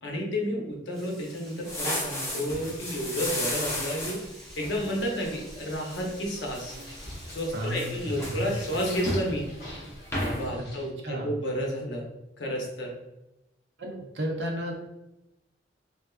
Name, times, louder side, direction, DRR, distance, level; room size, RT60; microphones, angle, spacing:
voice 1, 0.0-6.8 7.3-9.4 10.2-12.0 12.4-12.9, equal, 75° left, 0 dB, 0.7 m, -31 dB
Frying (food), 0.9-8.9, equal, ahead, 0.9 m, -50 dB
sound 1, 1.7-5.4 5.7-6.0 6.5-7.5 7.8-9.3 9.7-9.9 10.1-10.5, left 1 dB, 15° left, 0.5 m, -33 dB
sound 2, 4.5-10.8, left 1 dB, 60° left, 1.3 m, -46 dB
voice 2, 7.5-8.5 11.0-11.4 13.8-14.9, equal, 75° right, 0 dB, 0.7 m, -33 dB
3.4 x 2.4 x 2.3 m, 0.95 s
head